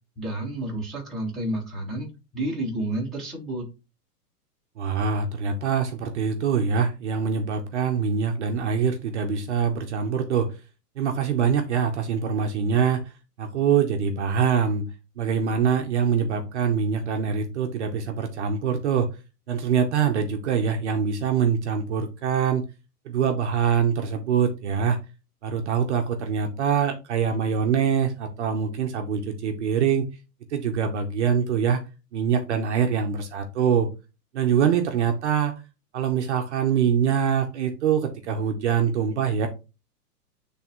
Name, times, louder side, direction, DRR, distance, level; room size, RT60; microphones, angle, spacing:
voice 1, 0.2-3.7, right 1 dB, ahead, -8 dB, 1.2 m, -30 dB
voice 2, 4.8-10.6 11.0-13.0 13.4-14.8 15.2-19.2 19.5-22.6 23.1-25.0 25.4-30.1 30.5-31.8 32.1-33.9 34.3-35.5 35.9-39.5, right 7 dB, 45° right, 4 dB, 0.8 m, -24 dB
9.2 x 3.4 x 3.0 m, 0.29 s
hypercardioid pair, 170°, 48 cm